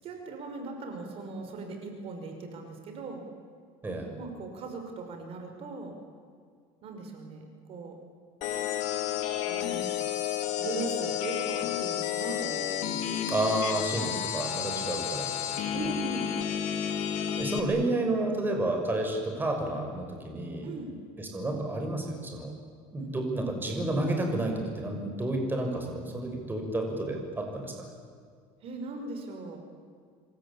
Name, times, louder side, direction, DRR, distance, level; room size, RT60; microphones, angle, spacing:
voice 1, 0.0-3.2 4.2-6.0 6.8-8.0 9.5-9.9 10.6-12.9 15.7-16.3 20.6-20.9 23.0-23.1 28.6-29.6, right 3 dB, 50° right, 4 dB, 5.5 m, -39 dB
sound 1, 8.4-17.6, left 10 dB, 65° left, 3.3 m, -31 dB
voice 2, 13.3-15.8 17.4-20.7 21.2-22.5 22.9-27.9, right 2 dB, 15° right, 2 dB, 6.2 m, -31 dB
27.0 x 24.0 x 8.8 m, 2.1 s
cardioid pair, 130°, 13 cm